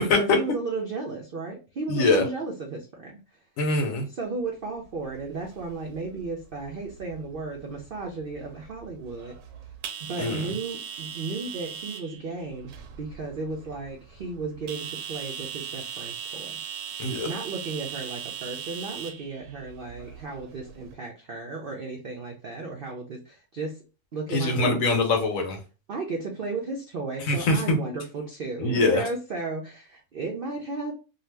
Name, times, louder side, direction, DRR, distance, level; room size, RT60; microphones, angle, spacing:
voice 1, 0.0-3.4 4.1-9.3 10.0-12.7 13.0-16.6 17.1-23.8 24.1-24.9 25.9-30.9, right 3 dB, 65° right, 0 dB, 0.5 m, -34 dB
voice 2, 1.9-2.3 3.6-4.1 10.2-10.4 17.0-17.3 24.3-25.6 27.3-27.8 28.6-29.0, left 2 dB, 65° left, 3 dB, 1.1 m, -23 dB
sound 1, 4.8-20.9, right 8 dB, 90° right, 1.1 m, -40 dB
2.7 x 2.3 x 3.2 m, 0.33 s
omnidirectional pair, 1.6 m